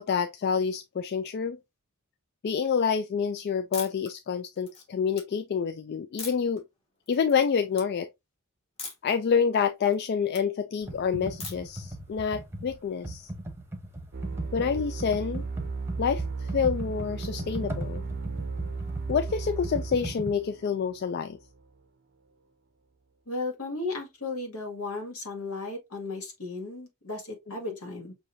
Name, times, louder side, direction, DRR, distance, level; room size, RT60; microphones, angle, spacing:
voice 1, 0.0-1.6 2.4-6.6 7.1-8.1 9.0-13.3 14.5-15.4 16.0-18.0 19.1-21.4 27.7-27.8, left 6 dB, 50° left, 0.3 m, -27 dB
sound 1, 3.7-4.1 4.6-5.2 6.2-6.6 7.1-7.4 7.7-7.9 8.8-9.1 9.5-10.4 11.4-11.8, left 4 dB, 25° left, 1.5 m, -40 dB
Computer keyboard, 10.8-20.3, right 1 dB, 10° right, 0.9 m, -38 dB
sound 2, 14.1-21.6, right 4 dB, 45° right, 0.6 m, -35 dB
voice 2, 23.3-28.1, left 3 dB, 75° left, 2.0 m, -35 dB
6.3 x 2.8 x 2.7 m
head